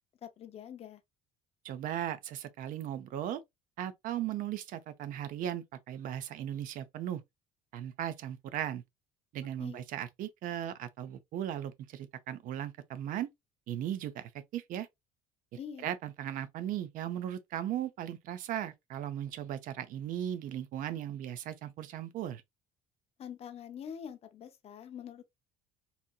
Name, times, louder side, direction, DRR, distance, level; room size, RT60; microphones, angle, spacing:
voice 1, 0.2-1.0 9.6-9.8 15.6-15.9 23.2-25.2, left 8 dB, 35° left, 0.6 m, -45 dB
voice 2, 1.6-3.4 3.8-7.2 7.7-8.8 9.3-13.3 13.7-14.9 15.8-22.4, right 11 dB, 50° right, 0.6 m, -37 dB
4.0 x 2.8 x 2.3 m
cardioid pair, 155°, 18 cm